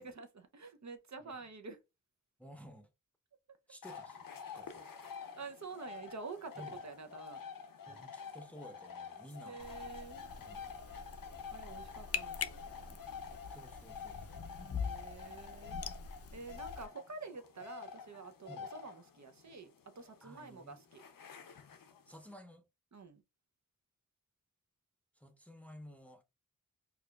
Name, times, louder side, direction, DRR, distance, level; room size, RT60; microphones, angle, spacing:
voice 1, 0.0-1.8 3.5-3.6 4.5-4.6 5.0-7.4 9.4-10.2 11.5-13.0 14.7-15.8 16.3-21.0 22.9-23.2, right 4 dB, 55° right, 0.6 m, -48 dB
voice 2, 2.4-2.9 3.7-4.2 4.5-4.9 6.6-6.8 7.9-9.6 10.3-10.6 13.5-14.5 18.5-18.7 20.2-20.8 22.1-22.7 25.2-26.2, equal, 5° left, 0.7 m, -53 dB
sound 1, 3.8-22.3, left 6 dB, 90° left, 0.6 m, -49 dB
sound 2, 9.6-16.9, left 6 dB, 45° left, 0.5 m, -44 dB
sound 3, 10.3-15.7, right 3 dB, 90° right, 1.4 m, -68 dB
4.7 x 2.4 x 2.3 m
wide cardioid pair, 70°, 33 cm